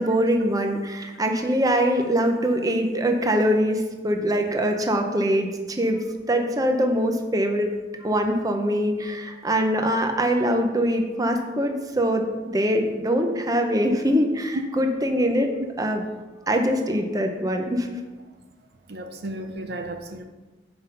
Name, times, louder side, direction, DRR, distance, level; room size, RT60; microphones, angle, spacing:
voice 1, 0.0-6.0 6.3-7.7 8.0-15.5 15.8-16.1 16.5-17.9, equal, 20° right, 4 dB, 0.7 m, -23 dB
voice 2, 18.9-20.3, right 1 dB, 55° right, 6 dB, 0.6 m, -34 dB
7.9 x 5.3 x 5.4 m, 1.2 s
head